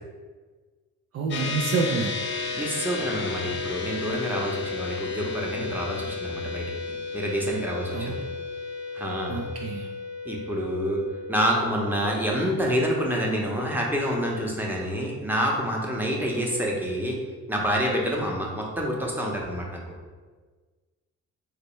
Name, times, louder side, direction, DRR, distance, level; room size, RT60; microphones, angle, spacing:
voice 1, 1.1-2.1 7.9-8.2 9.3-9.9, right 4 dB, 55° right, 0 dB, 0.4 m, -27 dB
sound 1, 1.3-14.9, left 4 dB, 40° left, 0.5 m, -34 dB
voice 2, 2.6-8.2 8.9-9.4 10.2-11.0 11.3-17.2 17.5-19.8, equal, 5° right, -2 dB, 0.8 m, -27 dB
3.2 x 3.1 x 3.1 m, 1.4 s
cardioid pair, 90°, 30 cm